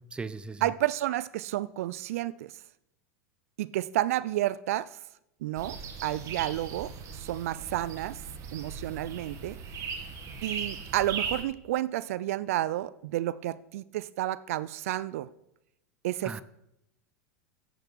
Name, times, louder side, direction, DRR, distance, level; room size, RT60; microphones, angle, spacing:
voice 1, 0.0-0.7 16.2-16.4, right 4 dB, 10° right, 15 dB, 0.6 m, -38 dB
voice 2, 0.6-2.5 3.6-5.0 5.4-8.2 8.5-9.6 10.4-15.3 16.0-16.4, right 14 dB, 70° right, 18 dB, 0.4 m, -31 dB
sound 1, 5.6-11.4, right 5 dB, 40° right, 1.7 m, -38 dB
10.0 x 6.7 x 6.2 m, 0.84 s
hypercardioid pair, 95°, 8 cm